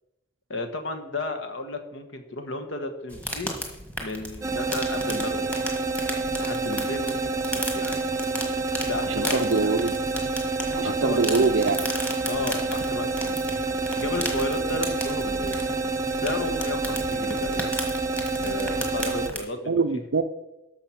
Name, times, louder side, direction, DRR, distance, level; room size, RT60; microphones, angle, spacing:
voice 1, 0.5-3.5 4.0-5.7 6.4-8.0 8.8-9.7 10.8-11.5 12.3-13.4 14.0-15.6 16.1-17.7 18.4-20.0, left 2 dB, 60° left, 6 dB, 1.3 m, -33 dB
sound 1, 3.1-19.4, equal, 5° left, 1.6 m, -35 dB
sound 2, 4.4-19.3, right 3 dB, 15° right, 0.7 m, -28 dB
voice 2, 9.1-9.9 10.8-11.9 19.7-20.2, right 4 dB, 65° right, 6 dB, 0.5 m, -24 dB
13.0 x 5.9 x 5.8 m, 0.95 s
head